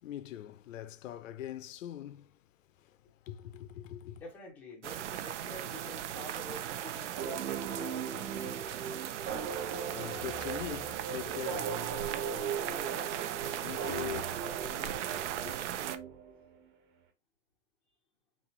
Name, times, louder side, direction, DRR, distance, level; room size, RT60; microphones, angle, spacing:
voice 1, 0.0-4.2 8.6-11.8 13.6-14.4 15.4-15.5, left 12 dB, 75° left, 0.6 m, -43 dB
voice 2, 4.1-8.6 12.1-13.2 14.6-15.0, left 2 dB, 5° left, 0.5 m, -49 dB
sound 1, 4.8-16.0, right 11 dB, 65° right, 0.7 m, -38 dB
sound 2, 7.1-16.6, right 6 dB, 35° right, 1.3 m, -39 dB
4.2 x 4.0 x 3.0 m
hypercardioid pair, 165°, 38 cm